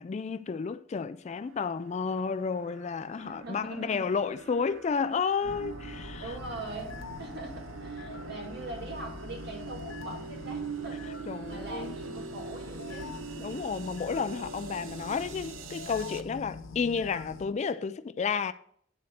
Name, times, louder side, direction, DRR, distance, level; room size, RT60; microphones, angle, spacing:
voice 1, 0.0-6.4 11.3-11.9 13.4-18.5, left 5 dB, 35° left, 0.3 m, -31 dB
sound 1, 1.3-16.2, right 5 dB, 90° right, 0.6 m, -43 dB
voice 2, 3.2-4.1 5.4-5.5 6.2-11.1 11.4-13.2, right 2 dB, 60° right, 2.2 m, -42 dB
sound 2, 5.4-17.5, left 4 dB, 85° left, 0.7 m, -44 dB
9.1 x 4.2 x 6.5 m
head